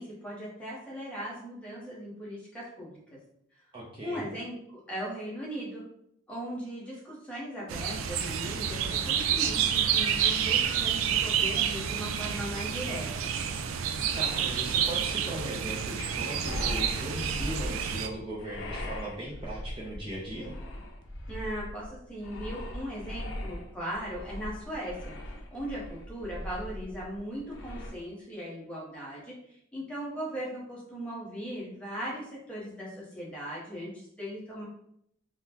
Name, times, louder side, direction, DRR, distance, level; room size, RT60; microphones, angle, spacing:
voice 1, 0.0-3.0 4.0-5.8 6.3-13.3 21.3-25.2 25.5-34.6, equal, 5° left, -6 dB, 0.9 m, -38 dB
voice 2, 3.7-4.3 14.2-20.5, right 1 dB, 25° right, -6 dB, 0.5 m, -38 dB
sound 1, 7.7-18.1, right 8 dB, 85° right, 0.3 m, -29 dB
sound 2, 16.4-27.9, left 1 dB, 65° left, 0.5 m, -39 dB
3.7 x 2.1 x 2.8 m, 0.74 s
head